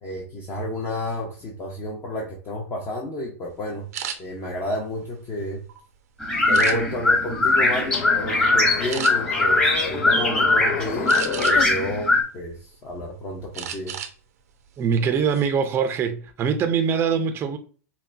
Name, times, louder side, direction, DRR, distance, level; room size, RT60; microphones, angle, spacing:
voice 1, 0.0-3.9 4.2-5.6 6.5-14.0, left 1 dB, 30° left, 1.0 m, -31 dB
sound 1, 3.9-4.2 4.8-5.8 6.5-7.1 7.6-7.9 8.2-8.4 8.9-9.1 11.1-11.8 12.3-13.0 13.5-14.2 14.5-14.7 15.1-15.5, right 8 dB, 90° right, 0.7 m, -33 dB
sound 2, 6.2-12.2, left 2 dB, 10° left, 1.2 m, -21 dB
sound 3, 7.8-11.6, left 8 dB, 60° left, 0.6 m, -31 dB
voice 2, 14.8-17.6, right 6 dB, 30° right, 0.6 m, -23 dB
5.6 x 2.3 x 2.7 m
supercardioid pair, 130°, 8 cm